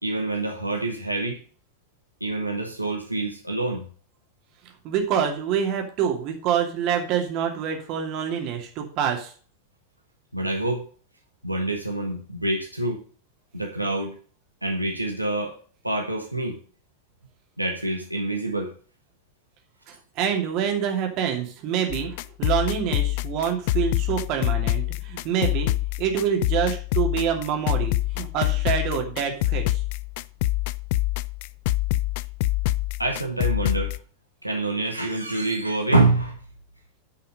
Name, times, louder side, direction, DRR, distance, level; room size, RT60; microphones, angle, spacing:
voice 1, 0.0-1.4 2.2-3.8 10.3-10.8 11.4-13.0 13.5-14.1 14.6-15.6 15.8-16.6 17.6-18.7 33.0-33.9 34.4-36.3, right 2 dB, 85° right, 1 dB, 1.5 m, -26 dB
voice 2, 4.8-9.3 19.9-25.7 26.0-29.8, right 8 dB, 40° right, 3 dB, 2.6 m, -26 dB
sound 1, 21.9-34.0, left 17 dB, 50° left, 0.4 m, -26 dB
10.0 x 5.7 x 5.5 m, 0.41 s
figure-of-eight pair, 90°, 0 cm